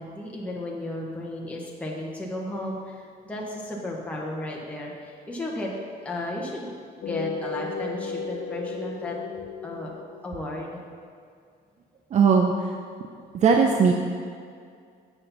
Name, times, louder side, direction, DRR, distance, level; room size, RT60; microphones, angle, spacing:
voice 1, 0.0-5.7 6.0-9.1 9.6-9.9 10.2-10.8, left 1 dB, 10° left, -3 dB, 1.2 m, -34 dB
sound 1, 7.0-10.6, left 4 dB, 55° left, 0.7 m, -34 dB
voice 2, 12.1-12.7 13.3-13.9, right 5 dB, 45° right, 3 dB, 0.6 m, -19 dB
7.1 x 6.6 x 5.7 m, 2.2 s
cardioid pair, 110°, 17 cm